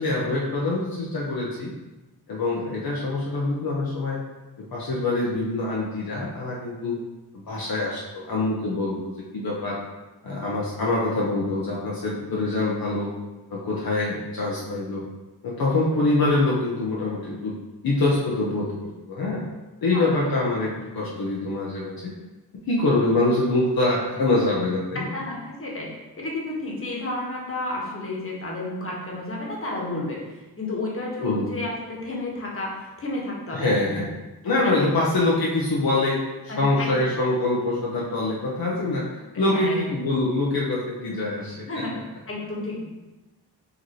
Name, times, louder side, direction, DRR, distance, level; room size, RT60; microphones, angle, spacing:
voice 1, 0.0-1.7 2.3-4.2 4.7-6.9 7.3-9.8 10.2-13.1 13.5-15.0 15.4-17.6 17.8-19.4 19.8-22.1 22.7-25.1 31.2-31.5 33.5-34.1 34.4-41.6, left 2 dB, 60° left, -5 dB, 0.9 m, -25 dB
voice 2, 25.1-25.9 26.2-34.1 34.6-34.9 36.5-37.0 39.3-39.8 41.7-41.9 42.3-42.8, left 2 dB, 35° left, -3 dB, 1.4 m, -31 dB
5.0 x 2.9 x 3.1 m, 1.1 s
cardioid pair, 60°, 40 cm